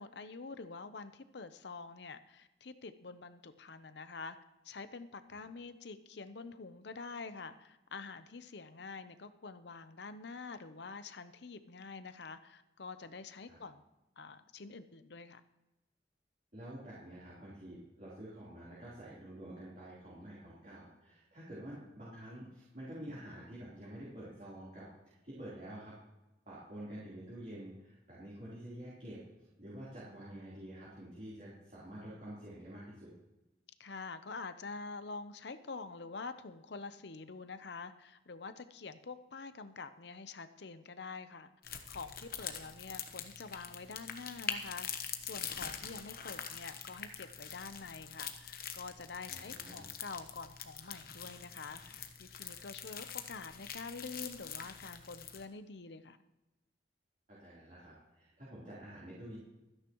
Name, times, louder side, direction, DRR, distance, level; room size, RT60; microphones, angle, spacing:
voice 1, 0.0-4.4 4.6-13.8 14.2-15.4 33.8-41.5 41.9-56.2, left 4 dB, 70° left, 11 dB, 0.7 m, -47 dB
voice 2, 16.5-25.9 26.5-29.2 29.6-33.1 49.3-49.8 57.3-59.4, right 1 dB, 45° right, -8 dB, 3.7 m, -48 dB
sound 1, 41.6-55.5, left 8 dB, 50° left, 1.1 m, -44 dB
25.0 x 9.9 x 3.1 m, 1.0 s
head